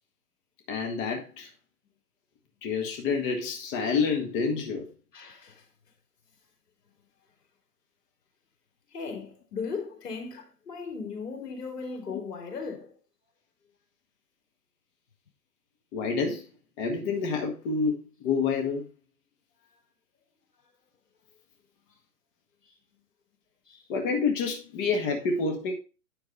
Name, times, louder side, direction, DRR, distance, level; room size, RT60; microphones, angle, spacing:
voice 1, 0.7-1.5 2.6-4.9 15.9-16.4 16.8-18.8 23.9-25.7, left 5 dB, 35° left, 1.6 m, -28 dB
voice 2, 5.1-5.6 8.9-12.9 22.7-22.8 23.7-23.8, left 5 dB, 75° left, 4.2 m, -37 dB
9.7 x 6.3 x 4.1 m
hypercardioid pair, 130°, 47 cm